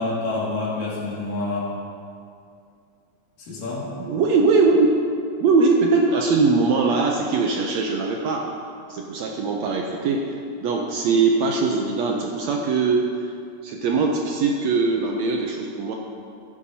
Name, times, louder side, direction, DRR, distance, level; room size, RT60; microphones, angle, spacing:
voice 1, 0.0-1.7 3.5-4.0, left 2 dB, 85° left, -6 dB, 4.0 m, -27 dB
voice 2, 3.9-4.9 5.4-8.5 8.9-13.3 13.6-16.0, right 4 dB, 75° right, 1 dB, 1.6 m, -21 dB
15.0 x 10.0 x 2.8 m, 2.4 s
omnidirectional pair, 3.7 m